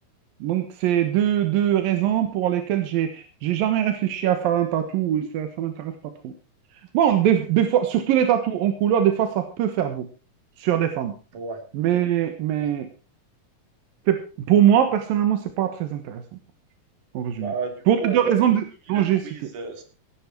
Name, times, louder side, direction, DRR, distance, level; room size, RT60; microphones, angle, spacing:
voice 1, 0.4-5.9 6.2-6.3 6.9-10.1 10.6-11.1 11.8-12.9 14.1-14.2 14.5-16.2 17.1-17.5 17.9-19.2, right 10 dB, 90° right, 8 dB, 3.1 m, -22 dB
voice 2, 17.4-18.5 18.9-19.8, right 4 dB, 65° right, 5 dB, 4.6 m, -33 dB
17.5 x 10.5 x 4.6 m, 0.34 s
omnidirectional pair, 3.9 m